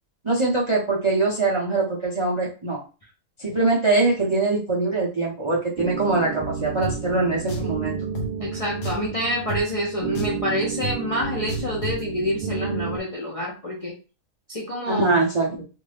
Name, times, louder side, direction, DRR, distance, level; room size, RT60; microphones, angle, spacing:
voice 1, 0.2-2.8 3.4-7.9 14.9-15.6, right 3 dB, 40° right, -3 dB, 0.4 m, -23 dB
sound 1, 5.8-13.0, right 6 dB, 65° right, 0.8 m, -31 dB
Drum, 6.8-7.0 7.5-7.7 8.1-8.3 8.8-9.1 9.5-9.6 10.1-10.4 10.8-11.0 11.5-12.0, right 1 dB, 85° left, 1.2 m, -30 dB
voice 2, 8.4-13.9 14.5-15.1, equal, 40° left, -4 dB, 0.5 m, -27 dB
2.6 x 2.6 x 3.2 m, 0.33 s
omnidirectional pair, 1.5 m